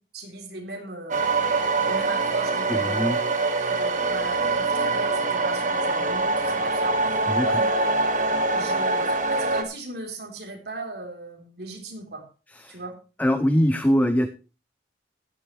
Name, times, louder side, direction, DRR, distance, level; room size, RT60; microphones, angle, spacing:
voice 1, 0.1-3.1 3.7-7.2 7.5-7.7 8.5-12.2 12.7-12.9, right 2 dB, 60° right, 0 dB, 3.6 m, -38 dB
sound 1, 1.1-9.6, right 3 dB, 45° right, 1.6 m, -24 dB
voice 2, 2.7-3.2 7.3-7.6 12.5-12.8 13.2-14.3, equal, 10° left, 10 dB, 0.5 m, -22 dB
13.5 x 11.5 x 3.2 m, 0.33 s
head